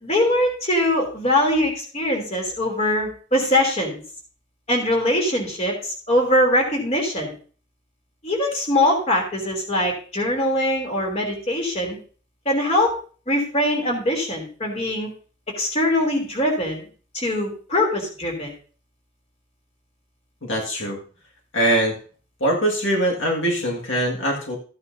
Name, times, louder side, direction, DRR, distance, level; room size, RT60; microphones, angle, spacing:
voice 1, 0.0-4.0 4.7-7.3 8.2-12.0 12.4-12.9 13.3-15.1 15.6-16.8 17.1-18.5, left 1 dB, 30° left, 1 dB, 3.0 m, -22 dB
voice 2, 20.4-21.0 21.5-21.9 22.4-24.6, right 1 dB, 70° left, -1 dB, 1.8 m, -22 dB
14.0 x 9.6 x 2.6 m, 0.40 s
head